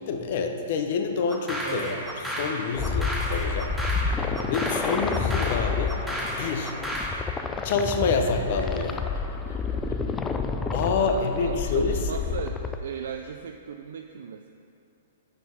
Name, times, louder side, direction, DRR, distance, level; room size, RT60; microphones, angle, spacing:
voice 1, 0.1-2.0 2.4-3.8 4.5-6.0 6.3-6.7 7.6-9.0 10.7-12.0, left 4 dB, 55° left, 5 dB, 0.7 m, -27 dB
sound 1, 1.3-7.2, equal, ahead, 0.9 m, -33 dB
voice 2, 1.6-2.0 4.2-4.5 11.0-14.5, right 7 dB, 75° right, 5 dB, 0.3 m, -37 dB
sound 2, 2.7-12.8, left 5 dB, 15° left, 0.3 m, -29 dB
Laughter, 7.8-10.4 11.2-12.4 12.9-13.3, left 3 dB, 85° left, 1.0 m, -51 dB
6.0 x 5.8 x 5.0 m, 2.6 s
hypercardioid pair, 135°, 0 cm